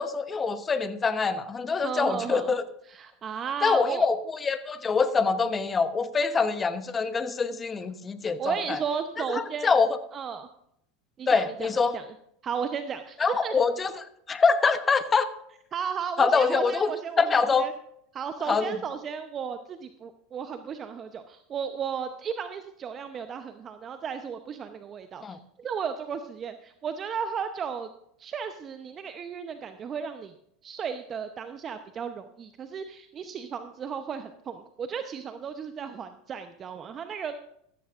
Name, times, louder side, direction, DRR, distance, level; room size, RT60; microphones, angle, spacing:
voice 1, 0.0-2.6 3.6-8.8 9.3-10.0 11.3-12.0 13.2-15.3 16.2-16.9 17.2-17.7 18.5-18.7 25.2-25.4, left 5 dB, 25° left, 11 dB, 1.0 m, -25 dB
voice 2, 1.8-2.5 2.9-4.1 8.4-9.7 10.1-10.5 11.2-12.1 12.4-13.5 15.7-17.7 18.1-27.9 28.2-30.3 30.6-37.3, right 7 dB, 35° right, 9 dB, 0.8 m, -34 dB
14.5 x 14.0 x 2.5 m, 0.72 s
hypercardioid pair, 90°, 0 cm